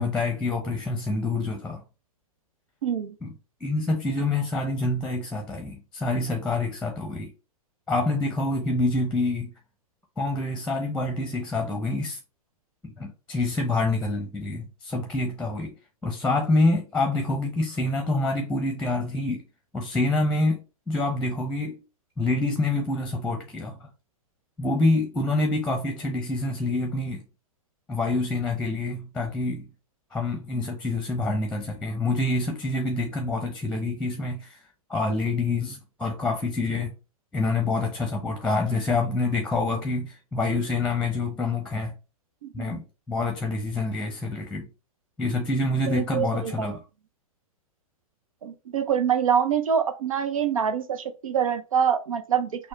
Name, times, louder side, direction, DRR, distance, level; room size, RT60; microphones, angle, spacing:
voice 1, 0.0-1.8 3.2-3.3 3.6-7.3 7.9-9.5 10.2-12.2 12.8-15.7 16.0-19.4 19.7-20.6 20.9-21.8 22.2-23.9 24.6-27.2 27.9-29.7 30.1-34.6 34.9-36.9 37.3-41.9 42.5-44.7 45.2-46.8, left 2 dB, 5° left, 0.8 m, -26 dB
voice 2, 2.8-3.1 42.4-42.6 45.9-46.8 48.4-52.7, right 8 dB, 65° right, 0.5 m, -25 dB
6.3 x 2.1 x 3.1 m
figure-of-eight pair, 110°, 19 cm